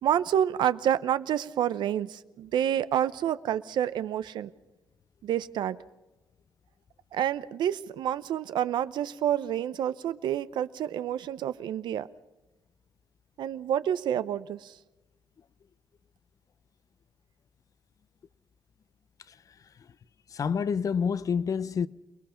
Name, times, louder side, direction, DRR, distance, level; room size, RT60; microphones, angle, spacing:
voice 1, 0.0-4.5 5.2-5.8 7.1-12.1 13.4-14.8, right 10 dB, 85° right, 0.7 m, -28 dB
voice 2, 20.3-21.9, left 6 dB, 50° left, 0.7 m, -28 dB
28.0 x 20.5 x 5.8 m
cardioid pair, 110°, 8 cm